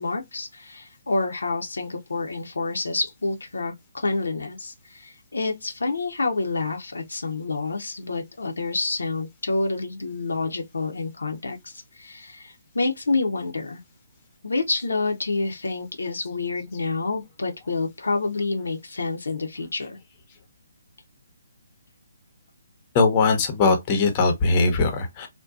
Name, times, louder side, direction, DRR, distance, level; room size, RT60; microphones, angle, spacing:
voice 1, 0.0-13.8 14.4-20.0, left 3 dB, 80° left, 0.6 m, -28 dB
voice 2, 22.9-25.3, left 3 dB, 30° left, 0.7 m, -20 dB
2.6 x 2.1 x 2.3 m
figure-of-eight pair, 145°, 0 cm